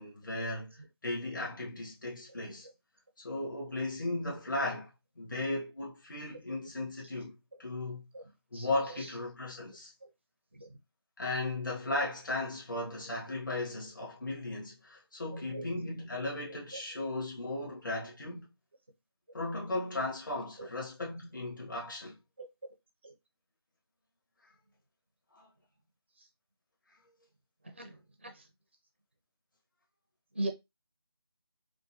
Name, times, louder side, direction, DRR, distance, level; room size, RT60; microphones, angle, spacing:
voice 1, 0.0-2.7 3.2-8.0 8.5-9.9 11.2-18.5 19.3-22.2 25.3-25.5, left 2 dB, 45° left, 1.2 m, -36 dB
voice 2, 8.5-9.0 10.6-10.7 15.5-15.7 16.7-16.8 20.6-20.7 22.4-22.5 23.0-23.1 27.8-28.0 28.2-28.4 30.4-30.5, right 2 dB, 25° right, 0.4 m, -38 dB
4.5 x 2.1 x 2.7 m
figure-of-eight pair, 170°, 14 cm